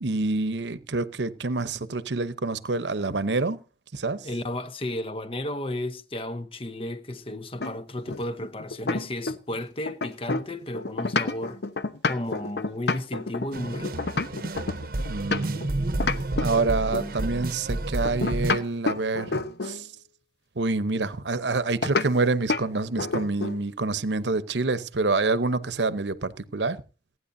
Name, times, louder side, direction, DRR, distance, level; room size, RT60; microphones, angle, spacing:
voice 1, 0.0-3.6 3.9-4.3 15.1-15.6 16.4-19.9 20.6-26.8, right 3 dB, 85° right, 0.9 m, -27 dB
voice 2, 4.2-11.6 12.1-14.0, left 1 dB, 30° left, 0.9 m, -33 dB
sound 1, 7.6-9.6 9.9-15.7 16.0-17.2 18.0-19.8 21.8-22.1 22.5-22.7 23.0-23.6, left 3 dB, 70° left, 0.9 m, -29 dB
sound 2, 13.5-18.5, right 2 dB, 55° right, 0.9 m, -30 dB
28.0 x 9.5 x 2.7 m
head